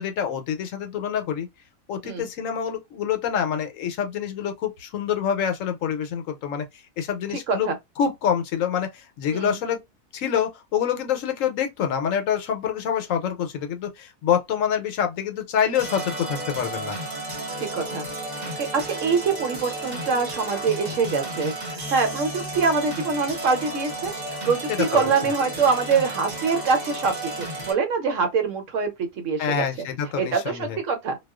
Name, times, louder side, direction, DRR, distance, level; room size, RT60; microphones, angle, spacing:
voice 1, 0.0-1.5 1.9-7.7 8.0-9.8 10.1-17.0 24.7-25.3 29.4-30.8, left 8 dB, 75° left, 1.0 m, -26 dB
sound 1, 15.7-27.7, right 1 dB, 35° right, 1.0 m, -33 dB
voice 2, 17.6-18.1 18.4-29.7 30.1-31.2, right 5 dB, 70° right, 1.1 m, -24 dB
2.3 x 2.3 x 2.3 m
omnidirectional pair, 1.4 m